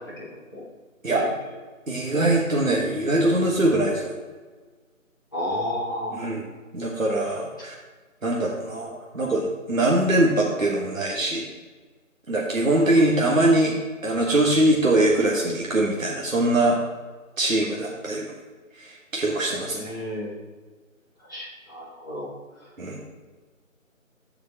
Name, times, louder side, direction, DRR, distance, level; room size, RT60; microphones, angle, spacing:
voice 1, 1.9-4.1 6.1-6.4 6.7-7.8 8.2-11.4 12.3-13.7 14.0-16.8 17.4-18.3 18.8-19.9 22.8-23.0, right 1 dB, 70° right, -3 dB, 1.6 m, -22 dB
voice 2, 5.3-6.2 19.7-20.3 21.3-22.3, left 1 dB, 15° left, -10 dB, 1.5 m, -31 dB
13.5 x 4.9 x 3.0 m, 1.3 s
figure-of-eight pair, 170°, 42 cm